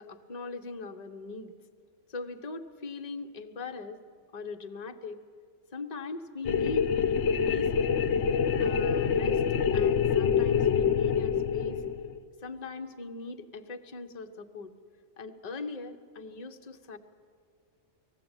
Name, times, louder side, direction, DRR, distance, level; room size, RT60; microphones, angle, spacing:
voice 1, 0.0-1.5 2.1-4.0 4.3-5.2 5.7-7.1 7.4-7.9 8.6-11.8 12.4-14.7 15.2-17.0, left 4 dB, 35° left, 6 dB, 1.0 m, -40 dB
sound 1, 6.4-12.2, left 7 dB, 70° left, 1.1 m, -26 dB
20.0 x 15.0 x 9.0 m, 2.3 s
omnidirectional pair, 1.2 m